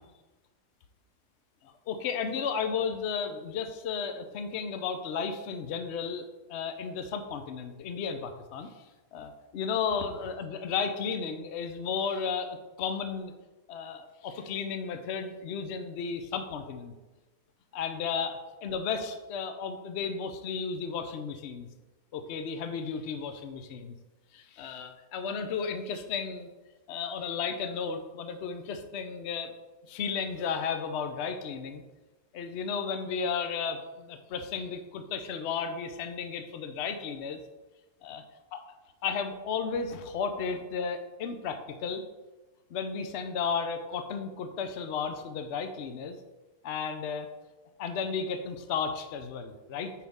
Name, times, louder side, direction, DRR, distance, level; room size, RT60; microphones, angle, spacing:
voice 1, 1.6-13.3 13.7-16.9 17.7-21.7 22.1-24.0 24.3-26.5 26.9-29.5 29.9-31.8 32.3-37.4 38.0-38.2 38.5-38.6 39.0-42.0 42.7-46.2 46.6-47.3 47.8-49.9, left 6 dB, 60° left, 7 dB, 0.9 m, -34 dB
9.3 x 4.7 x 3.6 m, 1.1 s
omnidirectional pair, 1.5 m